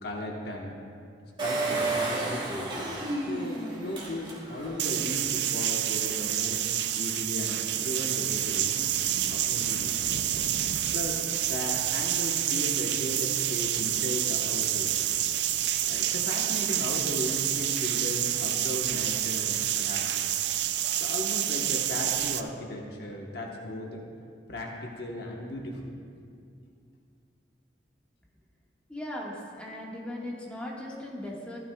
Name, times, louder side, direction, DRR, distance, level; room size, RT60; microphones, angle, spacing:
voice 1, 0.0-0.8 1.4-2.7 3.2-6.7 7.0-8.9 9.3-10.2 10.9-15.1 15.9-20.2 21.0-24.0 24.5-25.9, left 1 dB, 60° left, -1 dB, 1.2 m, -36 dB
Engine, 1.4-4.8 5.3-5.4 5.6-5.7, right 2 dB, 30° right, 2.7 m, -31 dB
sound 1, 4.8-22.4, right 11 dB, 70° right, 0.4 m, -28 dB
voice 2, 28.9-31.6, left 1 dB, 5° left, -5 dB, 1.6 m, -38 dB
14.0 x 12.5 x 2.3 m, 2.3 s
head